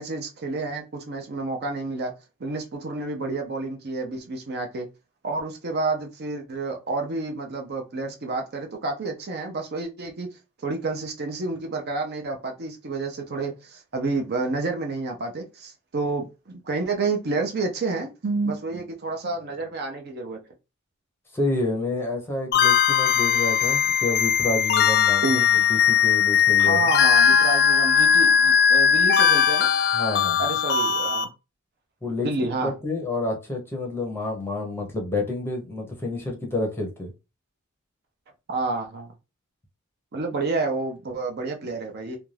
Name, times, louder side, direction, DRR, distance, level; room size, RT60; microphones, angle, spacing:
voice 1, 0.0-2.1 2.4-4.9 5.2-10.3 10.6-20.4 25.2-25.4 26.6-29.7 30.4-31.3 32.2-32.7 38.5-39.1 40.1-42.2, right 3 dB, 45° right, 3 dB, 0.5 m, -29 dB
voice 2, 21.3-26.9 29.9-30.5 32.0-32.3 32.6-37.1, left 2 dB, 10° left, 0 dB, 0.7 m, -29 dB
sound 1, 22.5-31.2, left 7 dB, 50° left, 0.4 m, -19 dB
2.5 x 2.2 x 3.2 m, 0.28 s
head